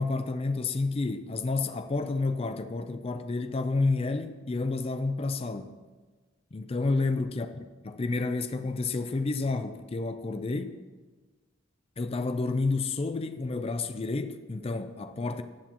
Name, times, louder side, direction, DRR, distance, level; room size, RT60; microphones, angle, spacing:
voice 1, 0.0-5.7 6.5-7.5 7.8-10.8 12.0-15.4, left 3 dB, 30° left, 0.4 m, -30 dB
14.0 x 8.2 x 2.9 m
head